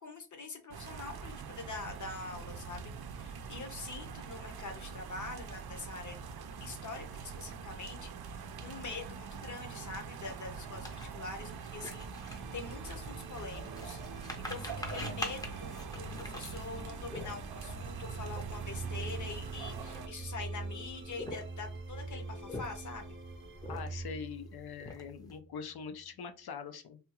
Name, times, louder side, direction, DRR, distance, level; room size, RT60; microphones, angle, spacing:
voice 1, 0.0-6.2 6.6-14.0 14.4-23.2, left 3 dB, 55° left, 4 dB, 0.8 m, -44 dB
sound 1, 0.7-20.1, right 5 dB, 80° right, 0.5 m, -44 dB
sound 2, 10.8-17.7 18.3-18.4 18.7-18.9 19.6-20.4 21.0-21.8 22.3-23.0 23.6-24.2 24.5-25.3, left 1 dB, 10° left, 0.5 m, -44 dB
sound 3, 11.4-25.7, right 2 dB, 30° right, 0.6 m, -45 dB
voice 2, 23.6-27.0, left 6 dB, 85° left, 8 dB, 0.6 m, -43 dB
3.5 x 2.3 x 2.9 m, 0.33 s
wide cardioid pair, 130°, 37 cm